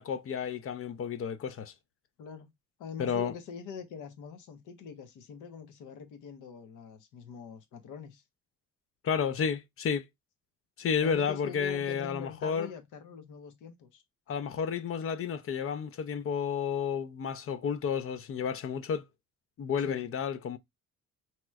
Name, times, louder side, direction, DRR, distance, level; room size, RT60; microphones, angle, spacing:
voice 1, 0.0-1.7 3.0-3.3 9.0-10.1 10.8-12.7 14.3-19.0 19.6-20.6, left 7 dB, 50° left, 0.5 m, -31 dB
voice 2, 2.2-2.5 2.8-8.2 11.0-14.0 19.8-20.1, left 6 dB, 85° left, 0.8 m, -44 dB
3.1 x 2.9 x 2.3 m
cardioid pair, 90°, 30 cm